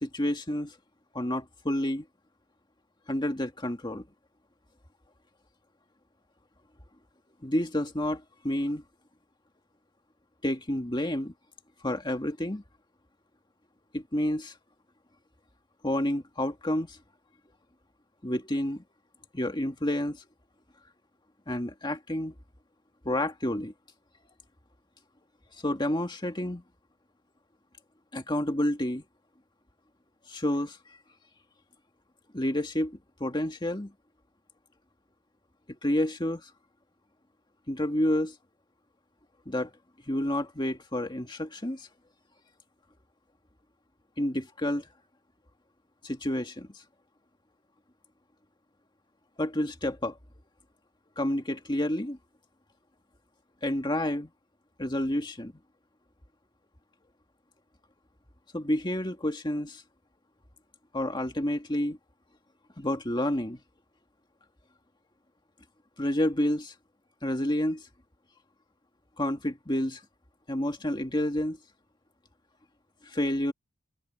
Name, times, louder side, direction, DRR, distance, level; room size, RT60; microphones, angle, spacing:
voice 1, 0.0-0.8 1.1-2.0 3.1-4.0 7.4-8.8 10.4-11.3 11.8-12.6 13.9-14.6 15.8-17.0 18.2-18.8 19.3-20.2 21.5-22.3 23.0-23.7 25.6-26.6 28.1-29.0 30.3-30.8 32.3-33.9 35.8-36.5 37.7-38.4 39.5-39.7 40.1-41.9 44.2-44.9 46.0-46.8 49.4-50.2 51.2-52.2 53.6-54.3 54.8-55.5 58.5-59.8 60.9-62.0 62.8-63.6 66.0-66.7 67.2-67.9 69.2-70.0 70.5-71.6 73.0-73.5, left 1 dB, 20° left, 2.1 m, -29 dB
head